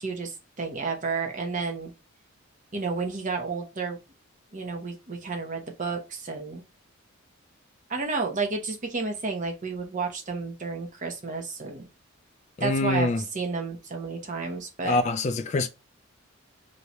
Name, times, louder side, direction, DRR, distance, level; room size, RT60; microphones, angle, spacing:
voice 1, 0.0-1.9 2.7-4.0 4.5-6.6 7.9-11.8 12.6-15.0, right 4 dB, 35° right, 0.9 m, -31 dB
voice 2, 12.6-13.2 14.8-15.7, left 2 dB, 35° left, 0.3 m, -25 dB
3.1 x 2.7 x 3.0 m
head